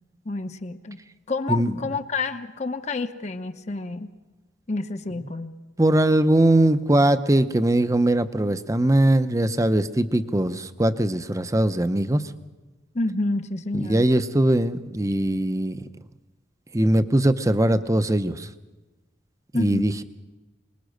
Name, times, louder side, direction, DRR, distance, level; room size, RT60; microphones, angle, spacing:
voice 1, 0.2-1.0 1.3-4.1 4.7-5.5 12.9-14.0 19.5-19.9, left 3 dB, 40° left, 8 dB, 0.9 m, -29 dB
voice 2, 5.8-12.3 13.7-15.8 16.7-18.5 19.5-20.0, right 1 dB, 20° right, 12 dB, 0.8 m, -21 dB
24.5 x 21.0 x 6.5 m, 1.2 s
head